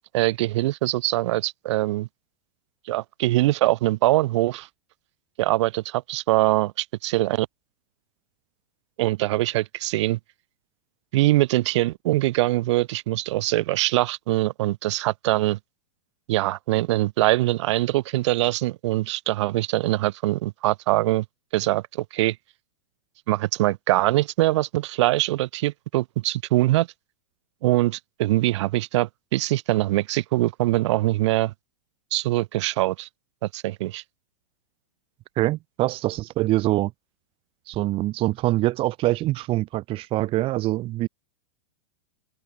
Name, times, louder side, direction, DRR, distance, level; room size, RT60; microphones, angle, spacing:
voice 1, 0.1-2.1 2.9-4.7 5.4-7.5 9.0-10.2 11.1-15.6 16.3-21.2 21.5-22.4 23.3-26.9 27.6-31.5 32.1-33.1 33.5-34.0, right 17 dB, 55° right, 0.9 m, -23 dB
voice 2, 35.4-36.9 37.7-41.1, right 17 dB, 30° right, 3.1 m, -24 dB
supercardioid pair, 145°, 17 cm